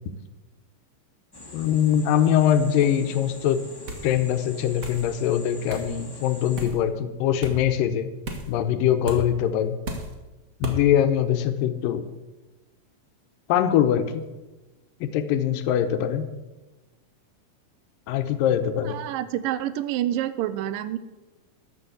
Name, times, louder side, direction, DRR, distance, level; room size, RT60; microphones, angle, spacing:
sound 1, 1.3-6.7, left 2 dB, 15° left, 0.7 m, -44 dB
voice 1, 1.5-3.6 4.0-8.1 8.5-9.8 10.6-12.0 13.5-14.3 15.0-16.3 18.1-19.0, left 10 dB, 85° left, 9 dB, 2.5 m, -22 dB
sound 2, 3.9-4.1 4.8-5.0 5.7-5.9 6.6-6.8 7.4-7.6 8.2-8.5 9.0-9.2 9.8-10.1 10.6-10.8, right 1 dB, 50° right, 1.0 m, -33 dB
voice 2, 18.8-21.0, right 12 dB, 85° right, 14 dB, 2.4 m, -28 dB
12.5 x 6.3 x 7.9 m, 1.1 s
omnidirectional pair, 3.9 m